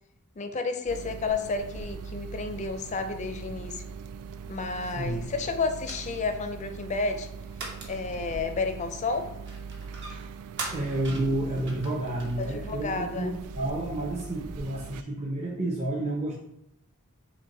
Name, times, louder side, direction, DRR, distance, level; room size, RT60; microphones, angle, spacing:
voice 1, 0.4-3.8 4.5-7.3 7.9-9.3 12.4-13.3, left 4 dB, 30° left, 8 dB, 0.4 m, -31 dB
sound 1, 0.9-15.0, right 5 dB, 90° right, 0.3 m, -41 dB
sound 2, 1.8-14.6, right 2 dB, 55° right, 1.0 m, -45 dB
voice 2, 10.7-16.3, right 1 dB, 30° right, -4 dB, 0.7 m, -30 dB
6.1 x 2.2 x 3.9 m, 0.77 s
head